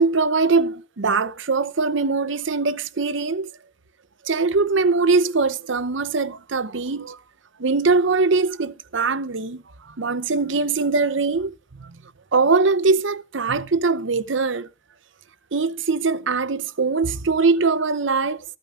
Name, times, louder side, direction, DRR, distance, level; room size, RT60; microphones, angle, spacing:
voice 1, 0.0-3.5 4.2-7.2 7.6-9.6 10.0-11.9 12.3-14.7 15.5-18.4, right 4 dB, 70° right, 0.8 m, -22 dB
14.0 x 9.0 x 3.7 m
head